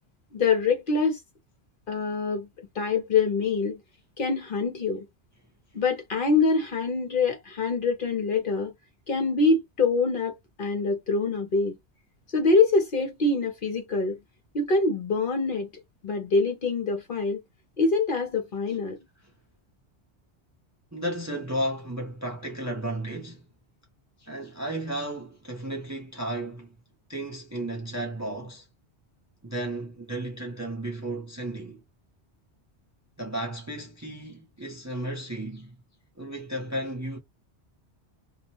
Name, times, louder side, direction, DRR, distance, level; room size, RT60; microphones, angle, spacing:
voice 1, 0.3-1.2 1.9-2.5 2.8-3.8 4.2-5.1 5.7-8.7 9.1-11.8 12.3-14.2 14.5-15.7 16.0-17.4 17.8-19.0, left 4 dB, 55° left, 0.8 m, -25 dB
voice 2, 20.9-23.5 24.2-26.7 27.1-28.7 29.4-31.8 33.2-35.7 36.2-37.2, right 1 dB, 20° right, 0.5 m, -33 dB
2.3 x 2.1 x 2.7 m
omnidirectional pair, 1.1 m